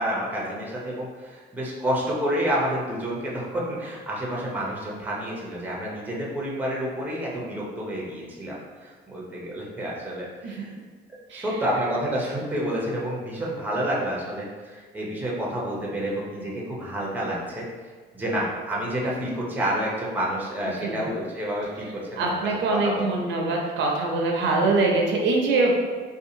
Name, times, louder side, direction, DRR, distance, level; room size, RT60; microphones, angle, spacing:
voice 1, 0.0-10.7 11.3-17.6 18.1-22.4 22.7-23.1, equal, 10° right, -4 dB, 0.6 m, -29 dB
voice 2, 20.7-21.1 22.2-25.7, right 3 dB, 70° right, 0 dB, 0.6 m, -23 dB
2.7 x 2.3 x 2.6 m, 1.5 s
cardioid pair, 115°, 20 cm